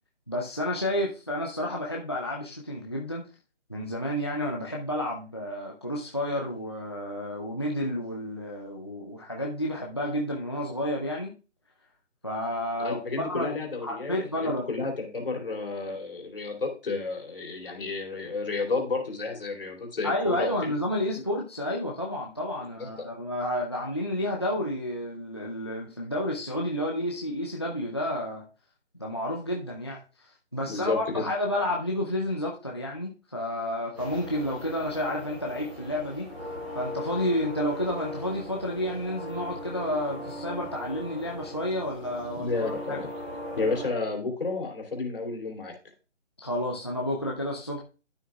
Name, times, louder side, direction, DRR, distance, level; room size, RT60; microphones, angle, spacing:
voice 1, 0.3-3.2 3.7-11.3 12.2-13.5 13.8-14.7 20.0-28.4 28.9-30.0 30.5-36.3 36.7-42.5 42.9-43.0 46.4-47.8, left 1 dB, 25° left, -2 dB, 0.5 m, -30 dB
voice 2, 12.8-20.7 22.8-22.9 30.6-31.3 42.3-43.1 43.6-45.7, left 3 dB, 50° left, 1 dB, 2.8 m, -31 dB
sound 1, 33.9-43.9, left 1 dB, 5° right, 1.4 m, -39 dB
11.0 x 9.0 x 2.3 m, 0.33 s
figure-of-eight pair, 170°, 36 cm